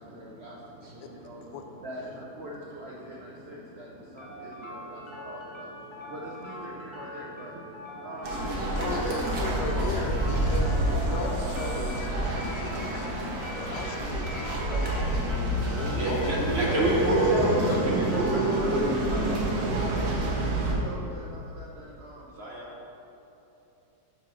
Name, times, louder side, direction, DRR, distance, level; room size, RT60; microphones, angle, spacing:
voice 1, 0.0-1.4 1.8-5.7 6.0-7.5 8.0-8.9 9.5-10.1 11.2-11.5 17.6-20.2 20.5-22.3, right 1 dB, 60° right, -3 dB, 0.6 m, -42 dB
sound 1, 4.2-20.2, left 1 dB, 35° left, 0.4 m, -43 dB
sound 2, 8.2-20.7, right 1 dB, 85° right, 1.7 m, -28 dB
voice 2, 8.3-13.2 13.6-16.4 17.2-17.9, left 4 dB, 75° left, 5 dB, 1.1 m, -38 dB
voice 3, 15.9-17.6 17.8-18.8 22.4-22.7, right 1 dB, 45° right, -3 dB, 1.0 m, -29 dB
5.4 x 5.0 x 6.0 m, 3.0 s
omnidirectional pair, 1.8 m